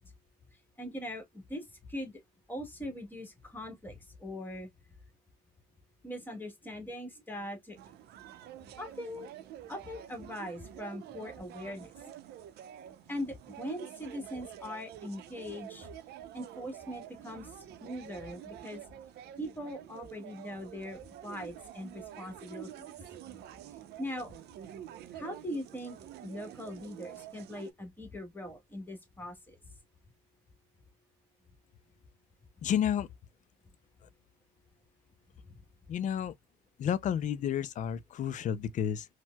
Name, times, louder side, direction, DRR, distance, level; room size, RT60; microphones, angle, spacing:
voice 1, 0.8-2.2 2.5-4.7 6.0-7.8 8.8-9.3 9.7-12.1 13.1-15.9 16.3-17.5 17.8-18.8 19.4-22.9 24.0-24.3 25.1-26.0 26.2-29.6 35.5-35.6, left 1 dB, 10° left, 1.3 m, -41 dB
sound 1, 7.8-27.7, right 11 dB, 75° right, 0.6 m, -48 dB
voice 2, 32.6-33.1 35.9-36.3 36.8-39.0, left 9 dB, 50° left, 0.4 m, -31 dB
4.4 x 2.1 x 2.2 m
cardioid pair, 110°, 17 cm